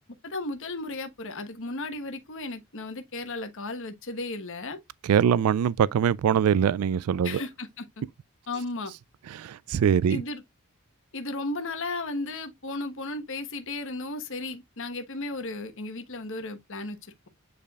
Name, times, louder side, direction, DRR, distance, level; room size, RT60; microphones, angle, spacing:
voice 1, 0.2-4.8 7.2-7.8 8.5-8.9 10.1-10.4 11.1-17.3, left 2 dB, 60° left, 1.3 m, -35 dB
voice 2, 5.0-7.4 9.3-10.2, right 8 dB, 80° right, 0.3 m, -23 dB
8.8 x 5.0 x 2.3 m
head